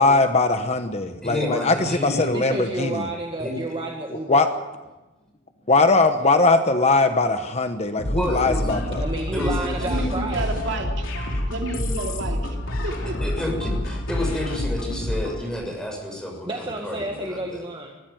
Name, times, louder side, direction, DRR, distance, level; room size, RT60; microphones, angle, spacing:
voice 1, 0.0-3.0 4.3-4.5 5.7-9.0, left 3 dB, 35° left, 8 dB, 1.0 m, -20 dB
voice 2, 1.2-2.3 3.4-3.7 8.1-8.8 9.3-10.2 13.2-17.6, left 1 dB, 5° left, 1 dB, 6.3 m, -30 dB
voice 3, 2.3-4.5 9.0-10.5 16.5-18.0, right 2 dB, 25° right, 1 dB, 1.8 m, -30 dB
sound 1, 8.0-15.4, left 1 dB, 70° left, 3.9 m, -27 dB
voice 4, 9.8-13.2, right 2 dB, 60° right, 2 dB, 3.1 m, -31 dB
20.5 x 15.0 x 9.3 m, 1.1 s
head